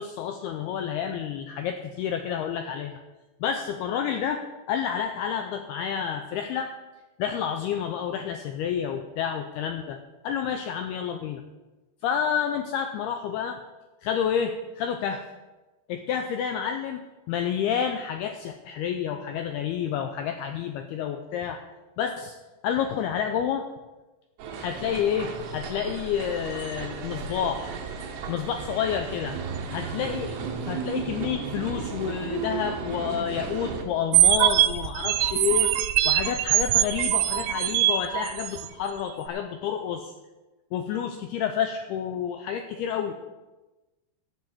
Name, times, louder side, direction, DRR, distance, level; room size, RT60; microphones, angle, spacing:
voice 1, 0.0-3.0 3.4-4.4 4.7-6.7 7.2-10.0 10.2-11.4 12.0-13.6 14.0-15.2 15.9-17.0 17.3-21.6 22.0-22.4 22.6-23.7 24.6-27.8 28.3-29.4 29.7-30.4 30.6-35.7 36.0-40.1 40.7-43.1, left 8 dB, 85° left, 6 dB, 2.3 m, -29 dB
sound 1, 24.4-33.8, right 5 dB, 70° right, 3.0 m, -34 dB
sound 2, 34.1-38.7, right 13 dB, 85° right, 2.3 m, -22 dB
14.0 x 5.6 x 7.7 m, 1.1 s
omnidirectional pair, 5.4 m